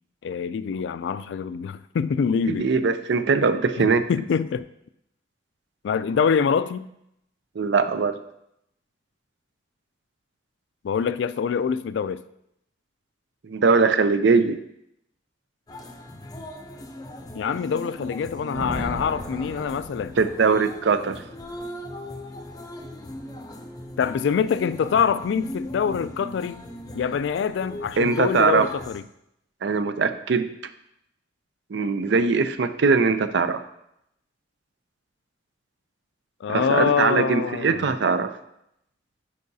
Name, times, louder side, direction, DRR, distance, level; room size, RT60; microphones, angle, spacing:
voice 1, 0.2-2.9 3.8-4.7 5.8-6.9 10.8-12.2 17.3-20.2 24.0-26.6 26.9-29.0 36.4-37.9, left 6 dB, 70° left, 0.3 m, -25 dB
voice 2, 2.5-4.0 7.6-8.2 13.4-14.6 20.2-21.2 28.0-28.7 29.6-30.5 31.7-33.6 36.5-38.3, right 4 dB, 65° right, 0.5 m, -21 dB
sound 1, 15.7-29.0, left 1 dB, 20° left, 0.6 m, -39 dB
Thunder, 18.5-20.7, equal, 45° right, 2.0 m, -36 dB
9.9 x 4.7 x 2.7 m
head